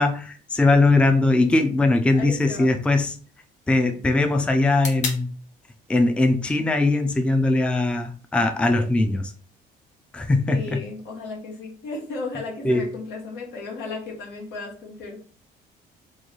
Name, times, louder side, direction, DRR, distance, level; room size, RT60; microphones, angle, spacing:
voice 1, 0.0-3.2 3.7-5.3 5.9-9.3 10.1-10.8 12.6-12.9, left 2 dB, 5° left, 0.3 m, -20 dB
sound 1, 0.7-8.7, left 3 dB, 45° left, 1.0 m, -41 dB
voice 2, 2.1-2.8 10.5-15.2, left 3 dB, 90° left, 1.2 m, -35 dB
3.1 x 2.2 x 3.8 m
cardioid pair, 110°, 17 cm